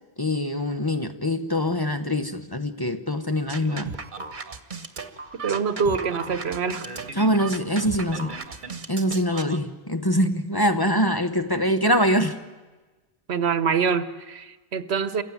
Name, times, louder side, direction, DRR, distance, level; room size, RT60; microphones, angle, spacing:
voice 1, 0.2-3.9 7.2-8.4 8.9-12.4, equal, 20° left, 7 dB, 0.9 m, -24 dB
sound 1, 3.5-9.6, right 4 dB, 50° right, 1.3 m, -35 dB
voice 2, 5.4-6.9 13.3-15.2, right 6 dB, 75° right, 13 dB, 1.2 m, -25 dB
28.0 x 15.5 x 9.3 m, 1.3 s
omnidirectional pair, 1.1 m